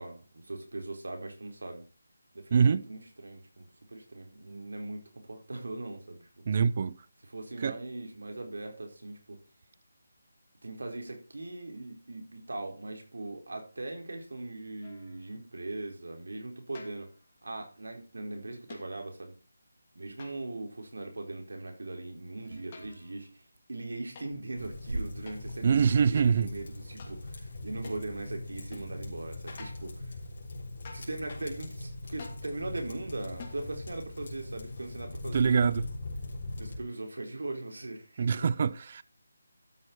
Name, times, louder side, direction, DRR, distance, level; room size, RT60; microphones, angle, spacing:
voice 1, 0.0-1.8 2.3-6.4 7.2-9.4 10.6-17.1 17.4-19.3 19.9-23.4 23.7-30.2 30.9-35.6 36.6-38.5, right 2 dB, 85° right, 4.4 m, -40 dB
voice 2, 2.5-2.8 6.5-6.9 7.6-7.7 25.6-26.5 35.3-35.8 38.2-39.0, right 6 dB, 30° right, 0.5 m, -24 dB
sound 1, 14.8-15.2 16.7-17.2 18.7-19.0 20.2-20.7 22.4-23.1 24.1-24.4 25.3-25.5 26.2-26.3 27.0-27.2 27.8-28.1 28.7-28.9 29.6-29.9 30.8-31.2 32.2-32.5 33.4-33.7, left 5 dB, 25° left, 2.6 m, -50 dB
sound 2, 22.5-23.6 24.2-25.5, right 2 dB, 65° right, 2.1 m, -40 dB
sound 3, 24.6-36.8, left 2 dB, 40° left, 4.1 m, -41 dB
12.5 x 6.6 x 4.7 m
figure-of-eight pair, 175°, 0 cm